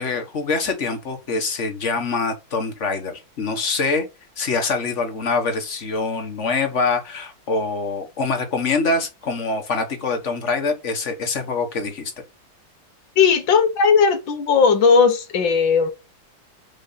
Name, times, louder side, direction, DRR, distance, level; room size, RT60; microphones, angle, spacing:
voice 1, 0.0-4.1 4.4-12.1, left 4 dB, 40° left, 1.7 m, -24 dB
voice 2, 13.2-15.9, left 5 dB, 70° left, 2.0 m, -16 dB
5.5 x 4.9 x 5.7 m
omnidirectional pair, 2.2 m